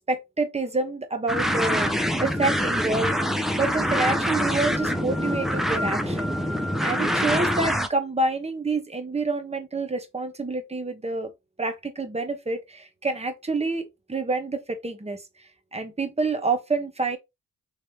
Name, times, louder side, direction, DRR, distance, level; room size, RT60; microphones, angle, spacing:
voice 1, 0.1-1.9 2.2-3.2 3.5-6.3 6.8-11.3 11.6-15.2 15.7-17.2, right 3 dB, 20° right, 1.0 m, -27 dB
sound 1, 1.3-7.9, equal, ahead, 0.6 m, -25 dB
3.3 x 3.2 x 2.8 m
cardioid pair, 65°, 32 cm